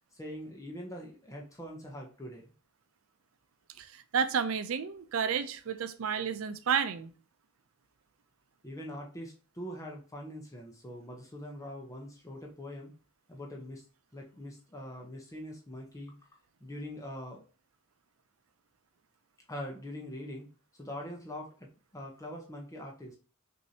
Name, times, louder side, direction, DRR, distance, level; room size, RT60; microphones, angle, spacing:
voice 1, 0.1-2.5 8.6-12.9 13.3-13.8 14.1-16.1 16.6-17.4 19.5-20.5 20.7-23.2, left 1 dB, 15° left, 0.7 m, -43 dB
voice 2, 3.8-7.1, right 7 dB, 90° right, 0.5 m, -31 dB
6.1 x 2.6 x 2.7 m
head